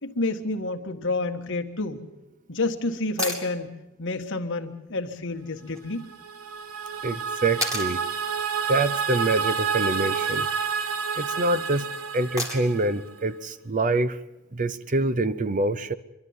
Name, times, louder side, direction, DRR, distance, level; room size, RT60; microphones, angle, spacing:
voice 1, 0.0-2.0 2.5-3.7 4.0-6.1, left 2 dB, 55° left, 1.6 m, -29 dB
sound 1, 3.2-3.5 5.7-5.8 7.6-7.9 9.9-10.4 12.4-12.9 15.0-15.1, equal, 15° right, 2.7 m, -31 dB
sound 2, 6.0-13.1, right 6 dB, 75° right, 1.1 m, -29 dB
voice 2, 7.0-8.0 8.7-10.5 11.2-11.9 12.1-14.2 14.5-15.9, right 2 dB, 35° right, 0.6 m, -25 dB
25.0 x 12.0 x 9.5 m
head